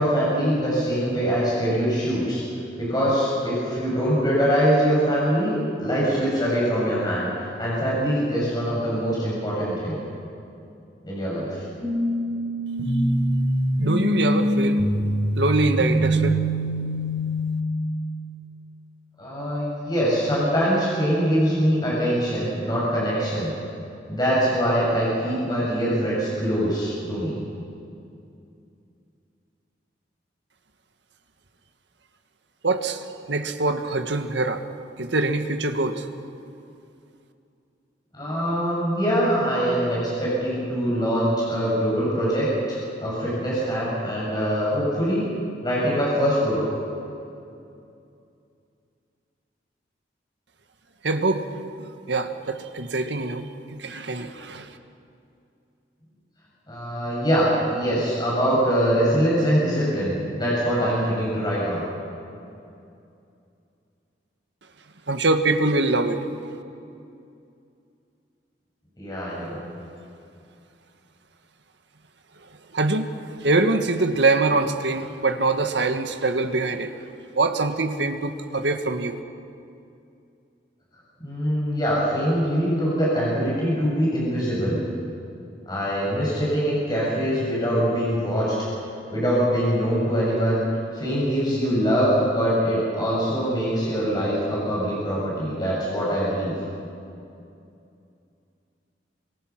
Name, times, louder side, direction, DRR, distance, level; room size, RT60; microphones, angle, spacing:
voice 1, 0.0-2.4 2.8-10.0 11.0-11.7 19.2-23.5 24.1-27.4 38.1-45.3 45.6-46.6 56.7-61.8 69.0-69.6 81.2-84.8 85.7-88.6 89.1-90.6 90.9-96.5, equal, 20° left, -6 dB, 6.7 m, -23 dB
sound 1, 11.8-17.7, equal, 45° left, 7.3 m, -24 dB
voice 2, 13.8-14.8 15.3-16.4 32.6-34.6 35.0-36.1 51.0-54.8 65.1-66.3 72.7-76.9 77.3-79.2, right 2 dB, 75° right, 7 dB, 1.6 m, -24 dB
28.0 x 25.0 x 6.0 m, 2.6 s
head